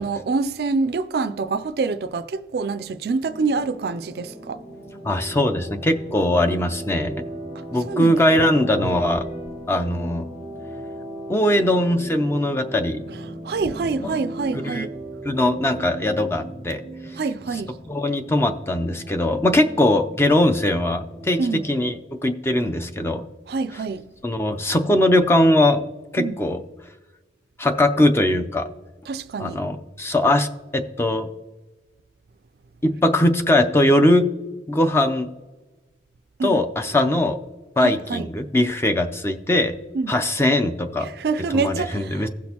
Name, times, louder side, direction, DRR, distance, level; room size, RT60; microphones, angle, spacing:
voice 1, 0.0-4.6 7.9-8.3 13.4-14.9 17.1-17.8 21.4-21.6 23.5-24.1 26.2-26.4 29.1-29.6 36.4-36.6 37.8-38.3 39.9-40.2 41.0-42.3, right 4 dB, 60° right, 0.4 m, -26 dB
sound 1, 3.2-22.0, right 1 dB, 40° left, 2.2 m, -37 dB
voice 2, 5.0-7.1 7.7-9.3 9.7-10.2 11.3-13.0 14.0-14.2 14.6-14.9 15.2-16.8 17.9-21.4 21.7-23.2 24.2-25.8 26.1-26.6 27.6-28.7 29.4-31.3 32.8-34.2 34.7-35.3 36.4-37.4 37.8-39.7 40.1-41.1 41.5-42.3, left 1 dB, 15° left, 0.5 m, -20 dB
16.0 x 6.1 x 2.9 m
head